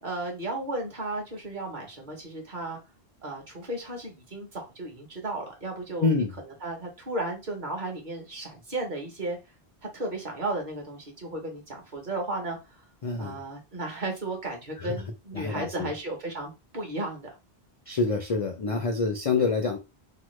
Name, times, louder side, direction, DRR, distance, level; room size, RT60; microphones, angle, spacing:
voice 1, 0.0-2.8 3.2-6.1 6.5-9.4 9.9-12.8 13.2-17.3, right 2 dB, 45° right, 2 dB, 1.1 m, -34 dB
voice 2, 6.0-6.3 13.0-13.4 14.8-15.0 15.3-15.9 17.9-19.8, left 4 dB, 55° left, 4 dB, 0.4 m, -26 dB
2.9 x 2.2 x 3.0 m, 0.26 s
omnidirectional pair, 1.1 m